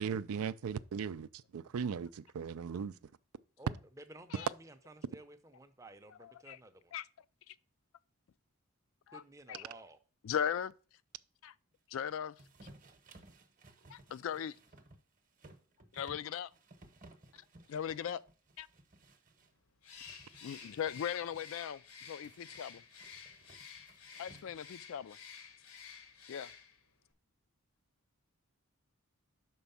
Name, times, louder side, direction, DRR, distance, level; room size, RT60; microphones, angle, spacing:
voice 1, 0.0-3.0, right 6 dB, 80° right, 0.4 m, -38 dB
voice 2, 3.6-6.9 9.1-10.0, right 1 dB, 15° right, 0.5 m, -54 dB
voice 3, 6.2-6.6 6.9-7.1 7.5-7.6 9.1-9.2 9.5-9.6 10.2-10.7 11.4-11.5 11.9-12.3 12.6-12.7 13.9-14.6 15.9-16.5 17.7-18.2 18.6-18.7 20.4-22.8 24.2-25.2 26.3-26.5, left 8 dB, 65° left, 0.3 m, -38 dB
sound 1, 12.4-19.5 19.9-21.4 22.2-24.8, right 2 dB, 35° right, 0.9 m, -59 dB
Bird, 19.8-26.9, left 7 dB, 80° left, 1.1 m, -52 dB
6.1 x 4.6 x 5.4 m
head